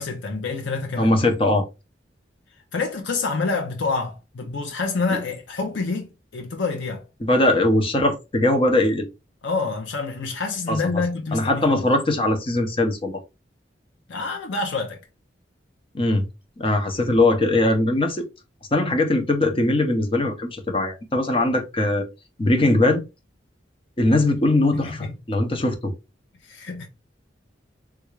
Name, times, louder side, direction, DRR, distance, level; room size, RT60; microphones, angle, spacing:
voice 1, 0.0-1.1 2.7-7.0 9.4-11.9 14.1-15.0 24.8-25.2 26.4-26.9, left 4 dB, 80° left, 0.6 m, -27 dB
voice 2, 1.0-1.7 5.1-5.2 7.2-9.1 10.7-10.8 11.3-13.2 15.9-16.3 16.6-18.3 18.7-22.1 22.4-23.0 24.0-25.9, left 2 dB, 30° left, 0.6 m, -20 dB
3.4 x 2.4 x 3.1 m
head